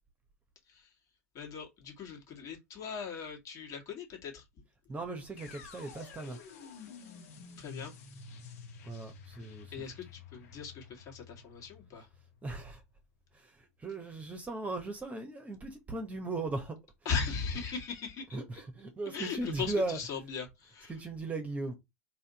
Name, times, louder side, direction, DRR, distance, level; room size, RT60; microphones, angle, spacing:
voice 1, 1.3-4.4 7.6-7.9 9.7-12.1 17.1-18.4 19.1-20.9, left 5 dB, 40° left, 2.0 m, -39 dB
voice 2, 4.9-6.4 8.8-9.7 12.4-12.8 13.3-16.8 18.3-20.0 20.9-21.8, right 2 dB, 15° right, 1.1 m, -37 dB
sound 1, 5.4-13.3, left 5 dB, 65° left, 1.2 m, -51 dB
4.2 x 2.8 x 4.0 m
hypercardioid pair, 90°, 8 cm